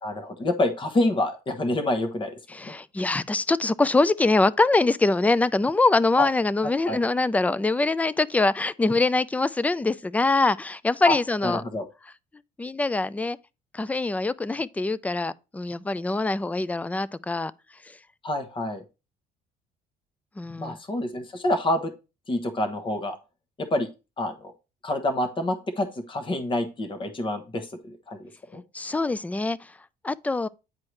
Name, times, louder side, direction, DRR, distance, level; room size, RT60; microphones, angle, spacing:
voice 1, 0.0-2.3 2.6-2.7 6.2-6.3 6.9-7.0 11.0-11.2 11.4-11.8 18.2-18.8 20.6-21.9 22.3-23.2 23.6-23.9 24.2-24.5 24.8-28.6, left 1 dB, 30° left, 1.1 m, -27 dB
voice 2, 2.5-11.6 12.6-13.4 13.7-17.5 17.8-18.0 20.4-20.8 28.7-29.8 30.0-30.5, left 3 dB, 10° left, 0.3 m, -24 dB
9.6 x 4.6 x 3.2 m
cardioid pair, 110°, 17 cm